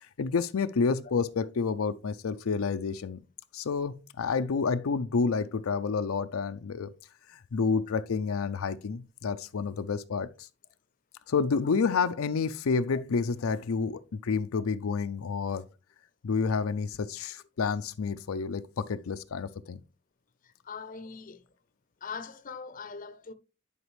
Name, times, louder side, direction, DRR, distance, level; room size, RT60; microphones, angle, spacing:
voice 1, 0.2-3.2 3.5-6.9 7.3-10.5 11.3-15.7 16.2-19.8, left 5 dB, 85° left, 0.5 m, -29 dB
voice 2, 20.4-21.4 22.0-23.3, left 5 dB, 40° left, 0.6 m, -41 dB
11.0 x 5.0 x 3.2 m
head